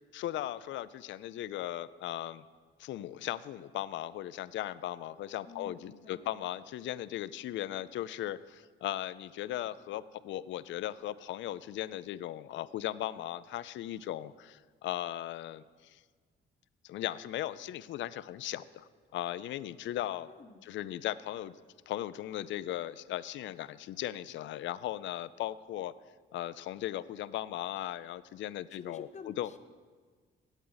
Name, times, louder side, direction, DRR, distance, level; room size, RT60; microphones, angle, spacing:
voice 1, 0.1-2.4 2.8-16.0 16.8-20.3 20.6-21.5 21.9-25.9 26.3-29.5, left 13 dB, 70° left, 16 dB, 0.4 m, -37 dB
voice 2, 5.4-6.3 20.3-20.6 28.7-29.6, left 4 dB, 35° left, 8 dB, 0.9 m, -49 dB
16.0 x 8.2 x 4.0 m, 1.5 s
cardioid pair, 90°, 20 cm